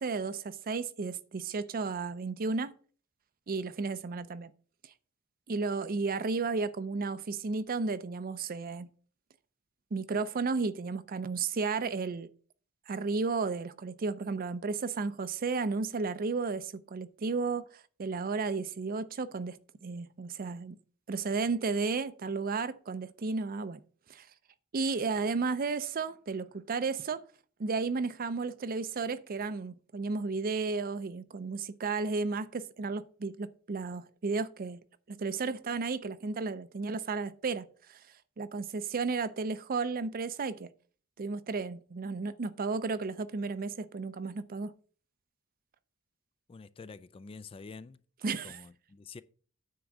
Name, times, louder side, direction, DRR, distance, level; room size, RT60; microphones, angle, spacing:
voice 1, 0.0-2.7 3.5-4.5 5.5-8.9 9.9-12.3 12.9-20.8 21.1-23.8 24.1-24.3 24.7-27.2 27.6-34.8 35.1-38.0 38.4-40.7 41.2-44.7 48.2-48.6, right 4 dB, 40° right, 0.5 m, -33 dB
voice 2, 46.5-48.0 48.4-49.2, left 4 dB, 25° left, 0.3 m, -47 dB
9.4 x 3.7 x 7.2 m
head